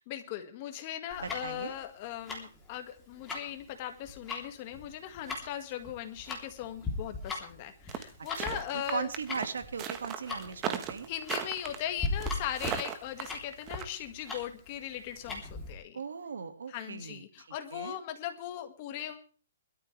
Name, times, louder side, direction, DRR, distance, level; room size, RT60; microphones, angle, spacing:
voice 1, 0.0-9.1 11.1-16.0 16.7-19.2, left 11 dB, 30° left, 7 dB, 1.9 m, -39 dB
Tick-tock, 1.1-15.7, left 3 dB, 10° left, 3.4 m, -40 dB
voice 2, 1.2-1.7 8.4-11.1 15.9-17.5 17.7-18.0, right 5 dB, 90° right, 8 dB, 2.1 m, -38 dB
sound 1, 7.9-13.8, right 9 dB, 20° right, 1.3 m, -36 dB
21.5 x 13.0 x 3.4 m, 0.36 s
hypercardioid pair, 160°, 0 cm